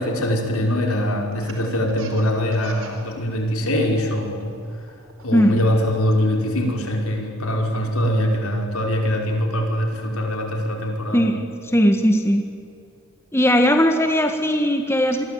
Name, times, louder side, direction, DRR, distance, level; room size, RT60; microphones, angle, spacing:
voice 1, 0.0-4.6 5.2-11.3, equal, 75° left, 1 dB, 5.3 m, -23 dB
Laughter, 1.3-3.1 3.4-4.0 4.4-6.1, right 3 dB, 65° right, 4.6 m, -40 dB
voice 2, 11.1-12.5 13.3-15.2, equal, 10° left, 5 dB, 1.6 m, -18 dB
28.0 x 22.0 x 9.3 m, 2.5 s
head